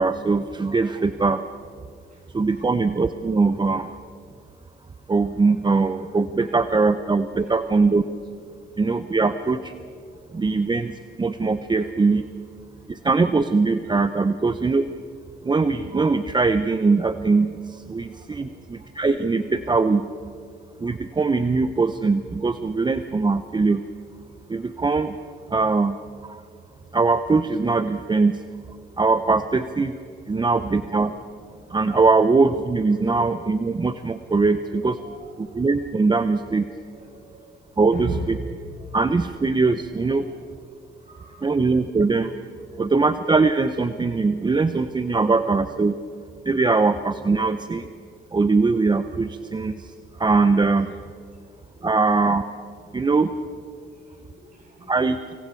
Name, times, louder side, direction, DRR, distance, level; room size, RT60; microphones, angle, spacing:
voice 1, 0.0-1.4 2.3-3.9 5.1-8.0 8.8-9.7 10.3-12.3 12.9-14.8 15.4-20.1 20.8-23.9 24.5-25.2 25.5-26.4 26.9-28.4 29.0-30.0 30.3-31.1 31.7-35.0 35.4-36.7 37.8-38.4 38.9-40.2 41.4-42.3 42.8-46.0 46.4-47.9 48.3-49.9 50.2-50.9 51.8-52.4 52.9-53.3 54.9-55.2, right 4 dB, 20° right, 11 dB, 0.7 m, -21 dB
voice 2, 6.4-6.9 7.5-7.6 8.5-8.7 10.1-10.5 12.8-12.9 18.4-18.5 18.8-18.9 30.7-30.8 31.6-31.8 35.0-35.6 36.9-38.2 38.8-39.0 39.9-40.2 41.0-41.5 42.7-42.8 45.1-45.2 51.3-51.9 53.9-54.9, right 3 dB, 45° right, -1 dB, 7.5 m, -38 dB
25.0 x 24.0 x 4.5 m, 2.3 s
cardioid pair, 90°, 20 cm